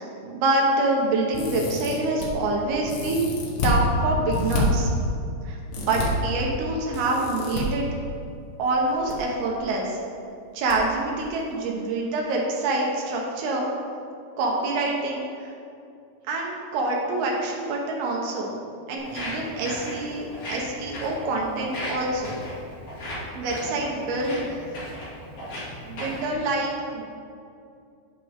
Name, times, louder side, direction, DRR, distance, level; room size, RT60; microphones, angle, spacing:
voice 1, 0.0-4.9 5.5-7.8 8.6-10.0 10.5-13.7 14.4-15.5 16.3-18.6 18.9-22.3 23.4-24.7 25.9-27.0, right 2 dB, 70° right, -1 dB, 2.6 m, -26 dB
sound 1, 1.3-2.3 2.9-3.8 4.3-4.6 5.7-6.1 6.9-7.6 8.7-9.2 9.4-9.5 10.7-10.8 11.2-11.3, left 3 dB, 85° left, 3.8 m, -29 dB
Walk footsteps, 19.0-26.3, left 1 dB, 40° left, 2.7 m, -36 dB
9.1 x 8.4 x 3.6 m, 2.5 s
omnidirectional pair, 5.4 m